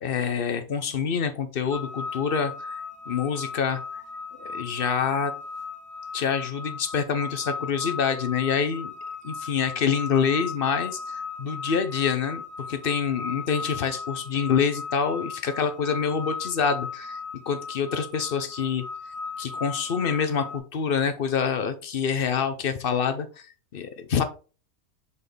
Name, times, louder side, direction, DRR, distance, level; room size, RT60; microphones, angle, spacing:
voice 1, 0.0-4.0 4.4-5.3 6.1-8.9 9.2-17.2 17.5-18.8 19.4-24.2, left 6 dB, 50° left, 10 dB, 0.8 m, -26 dB
sound 1, 1.7-20.6, left 4 dB, 25° right, 0.3 m, -36 dB
6.9 x 4.0 x 3.3 m, 0.35 s
omnidirectional pair, 1.5 m